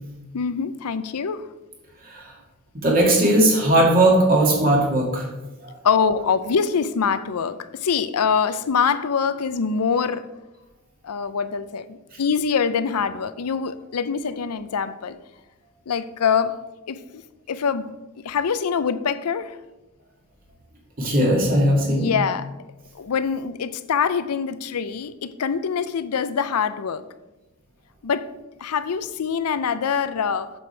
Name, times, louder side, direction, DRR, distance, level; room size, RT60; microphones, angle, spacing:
voice 1, 0.3-1.4 5.8-10.3 11.0-15.2 15.9-16.6 16.9-17.2 17.5-17.9 18.2-19.6 21.9-22.5 22.9-27.1 28.0-28.3 28.6-30.5, left 6 dB, 80° left, 14 dB, 0.5 m, -24 dB
voice 2, 2.7-5.3 5.6-6.2 21.0-22.2, right 1 dB, 40° right, -2 dB, 2.5 m, -19 dB
8.3 x 7.0 x 4.5 m, 1.1 s
head